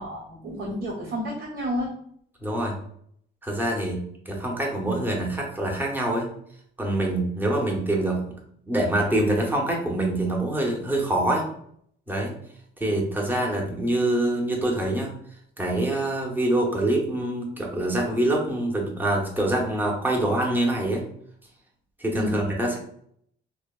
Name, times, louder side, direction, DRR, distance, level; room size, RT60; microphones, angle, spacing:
voice 1, 0.0-1.9 22.2-22.4, equal, 85° right, -7 dB, 0.9 m, -30 dB
voice 2, 2.4-2.7 3.4-4.0 4.3-6.3 6.8-8.4 8.7-11.5 12.1-12.4 12.8-15.1 15.6-21.1 22.0-22.8, right 1 dB, 10° right, -2 dB, 0.6 m, -25 dB
2.7 x 2.0 x 2.2 m, 0.66 s
cardioid pair, 90°, 20 cm